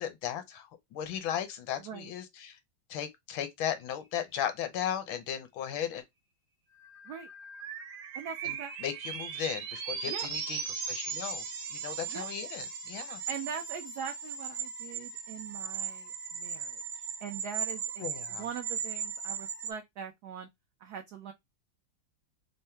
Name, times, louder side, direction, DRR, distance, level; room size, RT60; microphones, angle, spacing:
voice 1, 0.0-2.6 2.9-6.0 8.4-8.6 8.8-10.6 10.9-11.4 11.7-13.2 18.0-18.4, left 9 dB, 75° left, 1.4 m, -36 dB
voice 2, 1.8-2.1 7.0-7.3 8.1-8.7 10.1-10.3 12.1-12.3 13.3-20.5 20.8-21.3, right 7 dB, 80° right, 0.9 m, -42 dB
sound 1, 6.7-19.7, right 7 dB, 65° right, 1.2 m, -38 dB
3.5 x 2.1 x 4.3 m
omnidirectional pair, 2.3 m